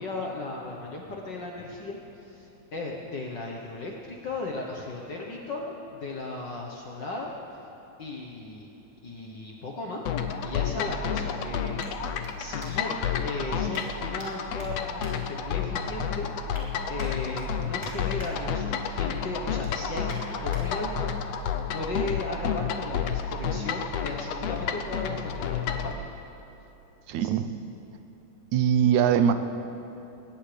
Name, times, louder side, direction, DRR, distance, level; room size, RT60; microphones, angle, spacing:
voice 1, 0.0-7.3 8.0-8.7 9.0-10.0 10.4-16.3 16.9-21.1 21.4-26.1 27.2-27.3, left 2 dB, 55° left, -1 dB, 1.3 m, -36 dB
sound 1, 10.1-25.9, left 7 dB, 70° left, 1.7 m, -30 dB
sound 2, 11.8-13.1 13.7-14.3 14.5-15.9 16.2-16.6 17.0-18.3 18.7-19.0 19.3-20.6 21.2-21.3, left 1 dB, 10° left, 2.8 m, -48 dB
voice 2, 27.1-27.5 28.5-29.3, right 8 dB, 80° right, 10 dB, 2.0 m, -22 dB
21.0 x 18.5 x 3.4 m, 2.9 s
omnidirectional pair, 3.3 m